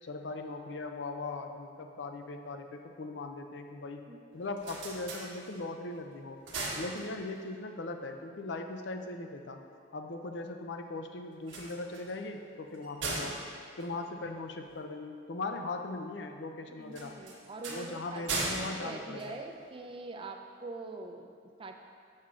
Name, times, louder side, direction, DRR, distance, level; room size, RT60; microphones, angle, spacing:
voice 1, 0.0-4.0 4.3-6.4 6.7-9.6 9.9-13.4 13.8-17.2 17.7-19.3, left 2 dB, 70° left, 5 dB, 0.6 m, -39 dB
sound 1, 4.3-5.9 6.2-7.6 11.3-14.8 16.9-19.9, right 2 dB, 85° right, 1.4 m, -39 dB
voice 2, 16.7-21.7, right 2 dB, 30° right, 4 dB, 0.5 m, -44 dB
7.1 x 6.5 x 3.7 m, 2.2 s
head